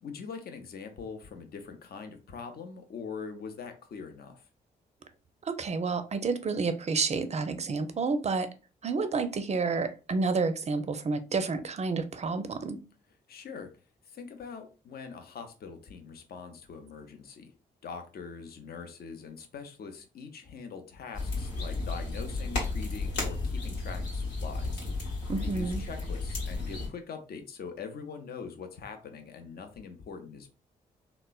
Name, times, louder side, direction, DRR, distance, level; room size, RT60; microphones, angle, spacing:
voice 1, 0.0-4.4 13.3-13.7 14.1-17.5 17.8-24.8 25.4-30.5, left 5 dB, 55° left, 0.6 m, -43 dB
voice 2, 5.4-8.5 8.8-12.8 25.3-25.8, right 4 dB, 35° right, 0.5 m, -30 dB
sound 1, 21.1-26.9, left 3 dB, 80° left, 1.0 m, -33 dB
3.0 x 2.0 x 2.3 m
hypercardioid pair, 40°, 19 cm